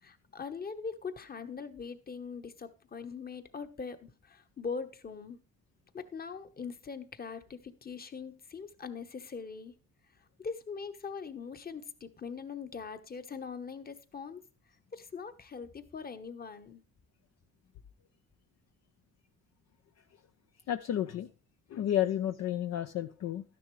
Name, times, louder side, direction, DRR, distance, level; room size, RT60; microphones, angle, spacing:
voice 1, 0.0-5.4 5.9-9.8 10.4-14.4 14.9-16.8, left 5 dB, 30° left, 10 dB, 1.1 m, -42 dB
voice 2, 20.7-21.3 21.7-23.4, left 11 dB, 60° left, 8 dB, 0.6 m, -31 dB
12.5 x 10.5 x 3.2 m, 0.33 s
cardioid pair, 90°, 30 cm